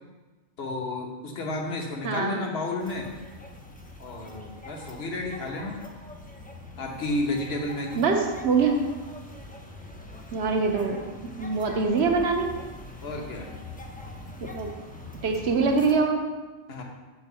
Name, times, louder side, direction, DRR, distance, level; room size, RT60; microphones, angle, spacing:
voice 1, 0.6-3.1 4.0-5.9 6.8-8.0 13.0-13.5 16.7-16.8, left 2 dB, 60° left, 2 dB, 1.2 m, -32 dB
voice 2, 2.0-2.4 7.9-8.8 10.3-11.0 11.4-12.5 14.4-14.7 15.2-16.2, right 4 dB, 65° right, 3 dB, 1.1 m, -24 dB
sound 1, 2.8-15.9, left 2 dB, 10° left, 0.4 m, -43 dB
6.1 x 4.7 x 5.5 m, 1.2 s
omnidirectional pair, 1.2 m